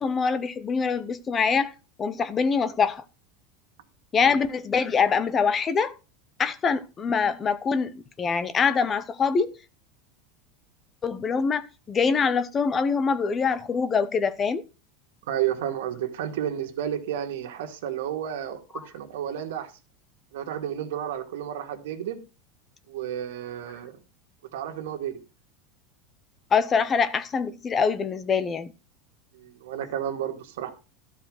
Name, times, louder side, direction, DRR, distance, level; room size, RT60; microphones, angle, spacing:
voice 1, 0.0-3.0 4.1-5.9 6.4-9.6 11.0-14.6 26.5-28.7, left 5 dB, 20° left, 0.6 m, -24 dB
voice 2, 15.2-19.7 20.3-22.2 22.9-24.0 24.5-25.2 29.3-30.7, right 10 dB, 80° right, 2.1 m, -32 dB
13.0 x 4.9 x 6.4 m
supercardioid pair, 165°, 0 cm